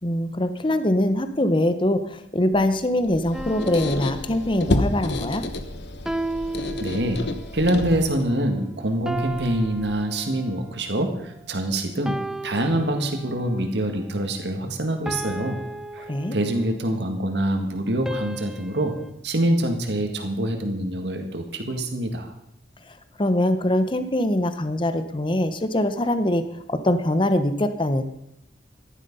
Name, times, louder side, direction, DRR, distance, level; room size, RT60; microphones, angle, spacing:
voice 1, 0.0-5.4 16.1-16.4 22.9-26.4 26.7-28.0, left 1 dB, 30° left, 10 dB, 0.9 m, -23 dB
sound 1, 2.5-10.0, right 1 dB, 20° right, 1.6 m, -46 dB
Squeak, 3.0-8.3, left 2 dB, 75° left, 1.2 m, -29 dB
sound 2, 3.3-5.0 6.0-7.6 9.0-10.7 12.0-13.6 15.0-16.8 18.0-19.1, right 1 dB, 5° right, 0.6 m, -34 dB
voice 2, 6.8-7.2 7.5-12.2 12.4-15.6 15.9-19.0 19.2-22.3, right 1 dB, 80° right, 4 dB, 1.9 m, -25 dB
14.5 x 11.5 x 5.5 m, 0.76 s
head